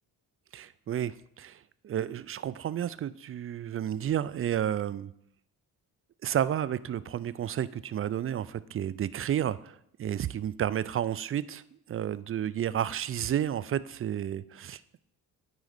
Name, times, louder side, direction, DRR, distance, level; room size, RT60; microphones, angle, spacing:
voice 1, 0.5-5.1 6.2-11.6 11.9-15.0, right 10 dB, 30° right, 17 dB, 0.4 m, -31 dB
9.3 x 5.0 x 4.1 m, 0.74 s
hypercardioid pair, 45°, 47 cm